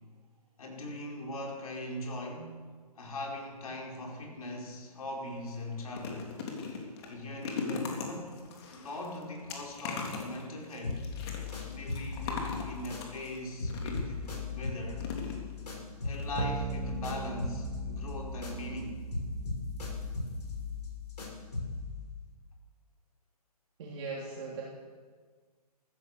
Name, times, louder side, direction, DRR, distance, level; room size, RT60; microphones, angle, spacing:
voice 1, 0.6-2.7 2.9-6.4 7.0-11.1 11.6-15.0 16.0-19.0, left 1 dB, 65° left, 0 dB, 4.9 m, -40 dB
sound 1, 4.9-5.1 5.5-14.3 15.0-15.8 16.1-16.3 16.5-16.6, left 4 dB, 40° left, 3.3 m, -40 dB
sound 2, 10.8-13.3 13.6-18.8 19.1-21.9, left 4 dB, 85° left, 5.8 m, -38 dB
sound 3, 16.4-21.2, right 7 dB, 70° right, 1.1 m, -40 dB
voice 2, 23.8-24.6, right 4 dB, 45° right, -4 dB, 3.4 m, -39 dB
14.5 x 14.5 x 6.8 m, 1.5 s
hypercardioid pair, 140°, 20 cm